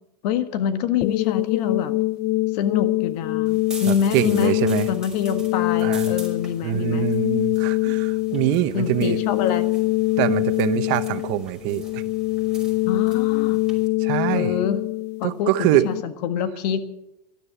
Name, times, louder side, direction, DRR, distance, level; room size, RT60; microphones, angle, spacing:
voice 1, 0.2-1.9 2.5-4.5 4.9-7.1 8.7-9.7 12.9-13.6 14.3-14.8 15.2-16.8, left 8 dB, 70° left, 10 dB, 1.7 m, -25 dB
sound 1, 1.0-16.0, left 20 dB, 50° left, 0.6 m, -24 dB
sound 2, 3.4-13.9, right 2 dB, 5° right, 5.9 m, -43 dB
voice 2, 3.9-4.9 5.8-6.2 6.6-9.2 10.2-12.0 14.0-14.6 15.2-15.9, right 15 dB, 60° right, 13 dB, 1.1 m, -24 dB
12.5 x 12.0 x 7.7 m, 0.85 s
supercardioid pair, 105°, 21 cm